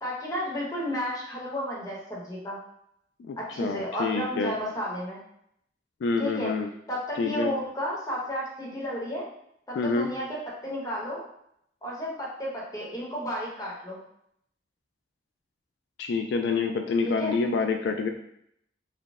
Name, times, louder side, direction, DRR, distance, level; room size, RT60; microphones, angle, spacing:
voice 1, 0.0-2.6 3.4-5.2 6.2-6.5 6.9-9.2 9.7-11.2 11.8-14.0 17.0-17.3, equal, 20° left, -4 dB, 0.9 m, -32 dB
voice 2, 3.3-4.6 6.0-6.7 7.2-7.5 9.8-10.1 16.0-18.1, left 4 dB, 70° left, 4 dB, 0.3 m, -27 dB
4.0 x 2.1 x 3.5 m, 0.74 s
head